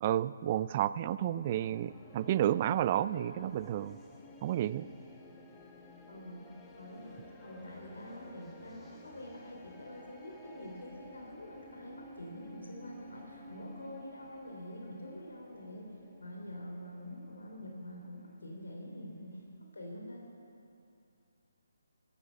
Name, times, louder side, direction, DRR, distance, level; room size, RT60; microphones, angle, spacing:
voice 1, 0.0-4.0 4.4-4.9, right 12 dB, 30° right, 17 dB, 0.3 m, -31 dB
sound 1, 1.4-19.6, left 2 dB, 10° left, 1.1 m, -55 dB
voice 2, 6.1-6.4 6.7-15.9 16.2-19.4 19.7-20.3, equal, 75° left, -1 dB, 3.5 m, -46 dB
15.0 x 11.0 x 5.7 m, 2.7 s
figure-of-eight pair, 145°, 0 cm